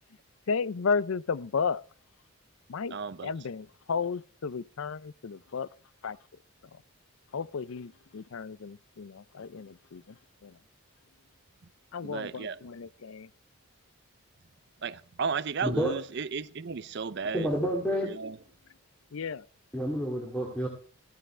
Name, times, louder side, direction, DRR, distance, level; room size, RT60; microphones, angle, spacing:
voice 1, 0.5-1.8 2.7-3.0 3.2-5.7 6.0-6.2 7.3-10.0 10.4-10.5 11.9-13.3 19.1-19.4, left 5 dB, 65° left, 0.5 m, -33 dB
voice 2, 2.9-3.3 12.0-12.6 14.8-17.5 18.0-18.3, right 5 dB, 50° right, 0.5 m, -34 dB
voice 3, 15.6-16.0 17.3-18.1 19.7-20.7, equal, 5° left, 2.1 m, -29 dB
14.5 x 14.0 x 3.3 m
head